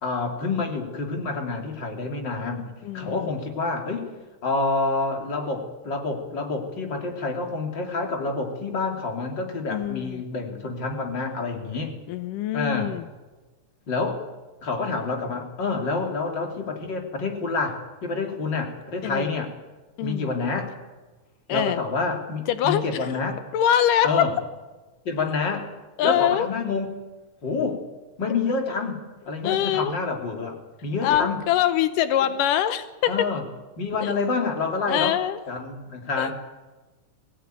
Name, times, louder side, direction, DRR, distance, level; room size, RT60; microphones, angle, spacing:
voice 1, 0.0-2.7 2.9-4.1 4.4-11.9 12.5-12.9 13.9-14.3 14.6-19.5 20.0-20.7 21.5-23.4 24.0-24.3 25.0-25.7 26.0-26.9 27.4-27.8 28.2-31.4 32.2-32.3 33.1-33.4 33.8-35.2 35.5-36.3, left 3 dB, 35° left, 3 dB, 3.3 m, -28 dB
voice 2, 2.8-3.3 9.7-10.2 12.1-13.0 19.0-19.3 20.0-20.3 21.5-21.8 22.5-22.8 23.5-24.3 26.0-26.5 29.4-29.9 31.0-33.3 34.0-34.1 34.9-35.4 36.2-36.3, left 11 dB, 90° left, 11 dB, 2.5 m, -23 dB
21.5 x 16.5 x 9.1 m, 1.2 s
omnidirectional pair, 3.7 m